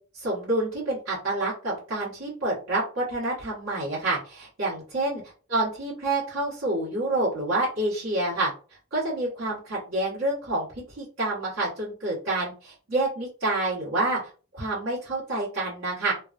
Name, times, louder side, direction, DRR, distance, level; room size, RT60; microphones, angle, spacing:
voice 1, 0.1-5.2 5.5-8.5 8.9-10.7 10.9-14.2 14.5-16.1, right 2 dB, 90° right, -7 dB, 1.5 m, -28 dB
3.3 x 2.3 x 2.5 m, 0.37 s
head